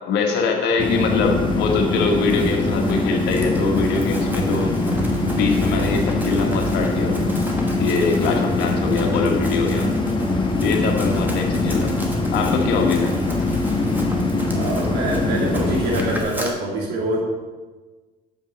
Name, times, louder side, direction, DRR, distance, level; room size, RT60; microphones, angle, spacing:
voice 1, 0.0-4.7 5.4-7.3 7.8-9.9 10.6-11.9 12.3-13.1, left 4 dB, 90° left, 2 dB, 1.4 m, -23 dB
sound 1, 0.8-16.2, left 2 dB, 30° left, 1.1 m, -22 dB
Run, 1.9-16.5, right 1 dB, 10° right, 1.4 m, -37 dB
voice 2, 14.5-17.2, right 1 dB, 85° right, -3 dB, 2.6 m, -25 dB
7.7 x 5.4 x 5.1 m, 1.3 s
cardioid pair, 110°, 17 cm